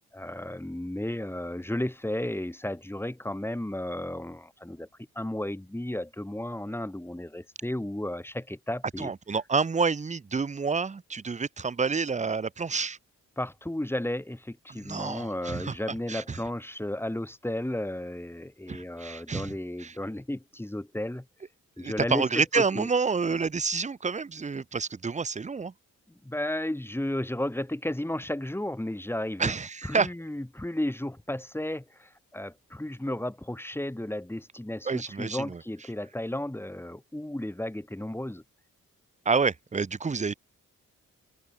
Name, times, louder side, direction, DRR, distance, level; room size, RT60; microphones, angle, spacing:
voice 1, 0.1-4.9 5.1-9.1 13.4-21.3 21.8-22.9 26.2-29.5 29.8-38.4, left 1 dB, 5° left, 1.6 m, -33 dB
voice 2, 9.0-13.0 14.7-15.7 16.1-16.4 18.7-19.5 19.8-19.9 21.8-25.7 29.4-30.1 34.9-35.6 39.3-40.3, right 5 dB, 20° right, 0.6 m, -28 dB
open air
supercardioid pair, 45°, 36 cm